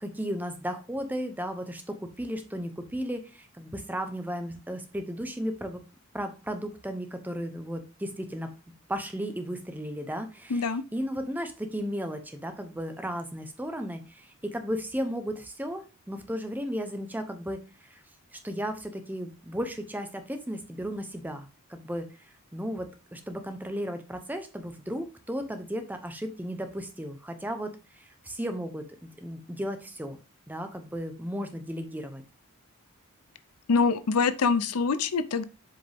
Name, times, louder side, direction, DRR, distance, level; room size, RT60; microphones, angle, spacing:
voice 1, 0.0-5.8 6.1-8.5 8.9-18.0 18.3-22.1 22.5-30.2 30.5-32.2, equal, 10° right, 7 dB, 0.8 m, -35 dB
voice 2, 10.5-10.8 33.7-35.4, left 4 dB, 90° left, 14 dB, 0.6 m, -24 dB
7.7 x 5.0 x 3.5 m, 0.32 s
head